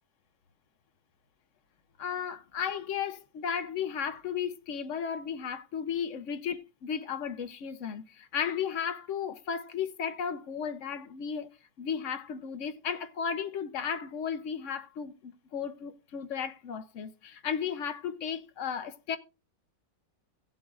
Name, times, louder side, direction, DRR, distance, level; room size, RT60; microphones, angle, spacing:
voice 1, 2.0-11.5 11.8-19.2, left 7 dB, 60° left, 0.9 m, -34 dB
16.5 x 7.8 x 2.4 m
omnidirectional pair, 1.9 m